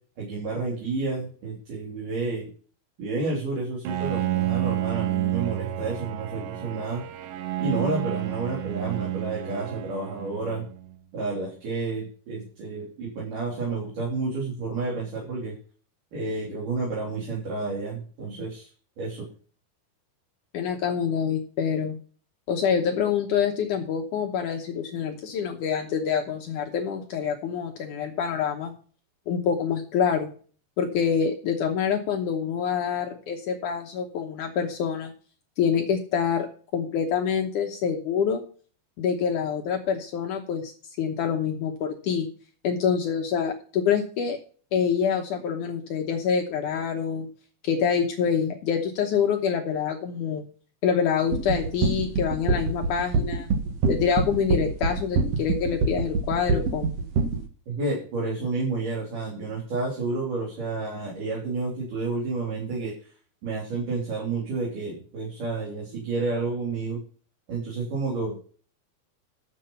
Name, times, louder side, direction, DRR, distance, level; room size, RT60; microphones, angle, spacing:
voice 1, 0.2-2.5 3.0-7.0 7.6-10.6 11.1-15.5 16.1-18.7 19.0-19.3 57.7-63.1 63.4-67.0 67.5-68.4, right 3 dB, 50° right, -4 dB, 4.6 m, -30 dB
Bowed string instrument, 3.8-11.0, right 14 dB, 85° right, 3.1 m, -30 dB
voice 2, 20.5-22.0 22.5-28.7 29.3-30.3 30.8-35.1 35.6-36.5 36.7-38.4 39.0-40.7 41.0-42.3 42.6-44.4 44.7-47.3 47.6-50.4 50.8-53.5 53.9-57.0, left 7 dB, 80° left, 2 dB, 1.8 m, -26 dB
sound 1, 51.3-57.4, right 4 dB, 70° right, 1.5 m, -24 dB
10.0 x 7.8 x 5.6 m, 0.42 s
omnidirectional pair, 5.1 m